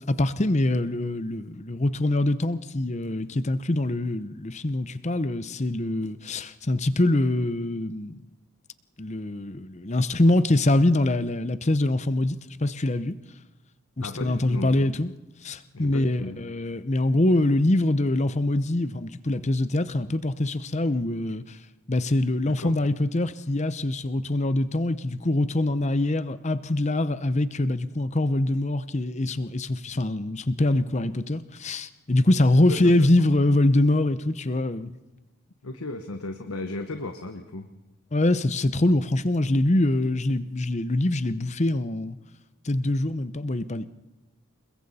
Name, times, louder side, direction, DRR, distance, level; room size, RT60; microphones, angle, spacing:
voice 1, 0.0-8.2 9.0-13.2 14.0-15.1 15.4-21.6 21.9-34.9 38.1-42.2 42.6-43.9, left 1 dB, 30° left, 0.7 m, -24 dB
voice 2, 14.0-14.9 15.7-16.4 22.4-22.7 32.7-33.3 35.6-37.7, left 2 dB, 70° left, 1.2 m, -35 dB
28.5 x 21.5 x 4.2 m
head